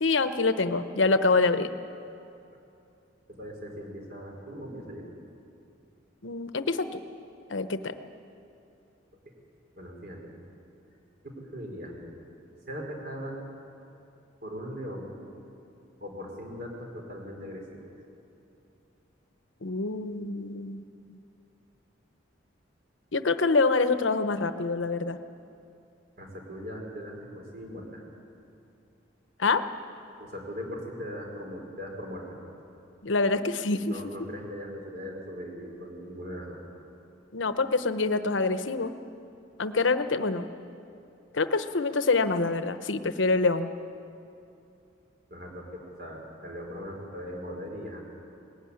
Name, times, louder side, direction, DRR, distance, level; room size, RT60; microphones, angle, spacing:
voice 1, 0.0-1.7 6.2-7.0 7.5-7.9 19.6-20.8 21.1-21.2 23.1-25.2 29.4-29.6 33.0-33.9 37.3-38.9 39.6-40.5 41.3-43.7, left 3 dB, 70° left, 10 dB, 0.9 m, -26 dB
voice 2, 3.3-5.0 9.8-10.3 11.2-12.2 12.7-13.4 14.4-15.1 16.0-17.9 26.2-28.1 30.2-32.5 33.9-36.6 45.3-48.0, equal, 50° right, 1 dB, 4.3 m, -39 dB
19.0 x 16.0 x 9.8 m, 2.7 s
head